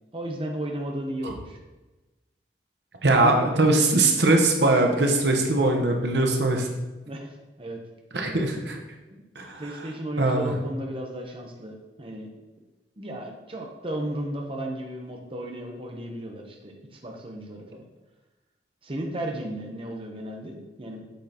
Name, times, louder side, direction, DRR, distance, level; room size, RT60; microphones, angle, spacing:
voice 1, 0.1-1.6 3.1-3.7 7.1-7.8 9.1-12.3 13.0-17.8 18.8-21.1, right 1 dB, 30° right, 1 dB, 0.8 m, -34 dB
voice 2, 3.0-6.7 8.1-8.8 9.4-9.6 10.2-10.5, right 2 dB, 75° right, 3 dB, 1.0 m, -21 dB
8.3 x 6.2 x 2.9 m, 1.1 s
head